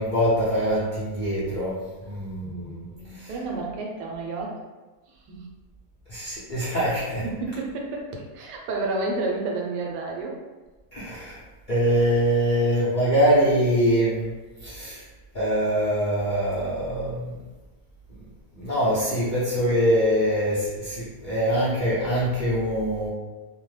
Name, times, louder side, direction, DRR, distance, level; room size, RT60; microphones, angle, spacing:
voice 1, 0.0-2.9 3.1-3.3 6.1-7.2 10.9-11.4 11.7-14.3 14.6-15.0 15.3-17.3 18.5-23.1, equal, 80° left, -10 dB, 0.4 m, -23 dB
voice 2, 2.4-4.6 5.1-5.5 7.0-10.4, right 3 dB, 90° right, 0 dB, 1.2 m, -31 dB
2.8 x 2.0 x 3.1 m, 1.2 s
omnidirectional pair, 1.8 m